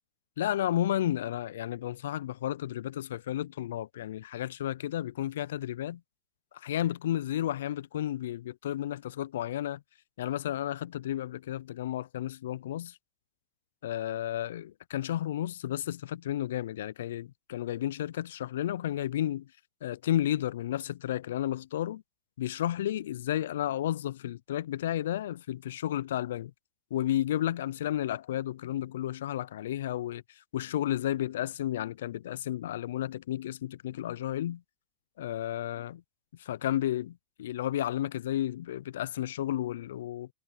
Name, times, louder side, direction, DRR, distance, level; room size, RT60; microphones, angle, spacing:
voice 1, 0.4-6.0 6.5-9.8 10.2-13.0 13.8-19.5 19.8-22.0 22.4-26.5 26.9-30.2 30.5-34.6 35.2-36.0 36.4-40.3, left 12 dB, 75° left, 0.4 m, -32 dB
hypercardioid pair, 110°, 0 cm